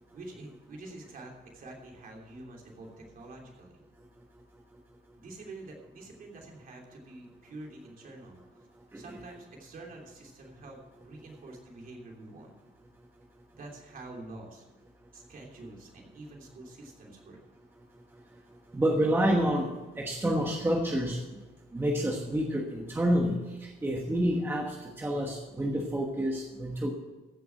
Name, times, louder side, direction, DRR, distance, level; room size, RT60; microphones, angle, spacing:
voice 1, 0.1-3.8 5.2-8.7 8.9-10.8 11.0-12.5 13.5-14.6 15.1-17.4, right 2 dB, 45° right, 0 dB, 3.3 m, -47 dB
voice 2, 18.7-19.7 20.0-21.2 21.7-26.9, equal, 10° right, 0 dB, 1.2 m, -28 dB
15.0 x 7.0 x 6.1 m, 1.2 s
cardioid pair, 175°, 20 cm